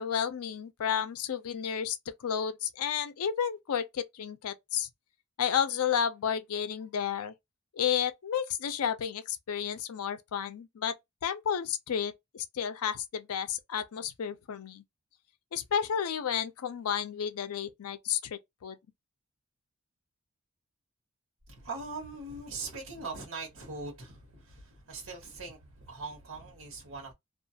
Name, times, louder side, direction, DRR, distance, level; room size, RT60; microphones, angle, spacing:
voice 1, 0.0-2.0 2.2-4.9 5.4-7.3 7.7-11.0 11.2-14.8 15.5-18.8, left 8 dB, 90° left, 0.4 m, -32 dB
voice 2, 21.5-27.1, right 3 dB, 65° right, 1.1 m, -41 dB
2.4 x 2.3 x 2.7 m
head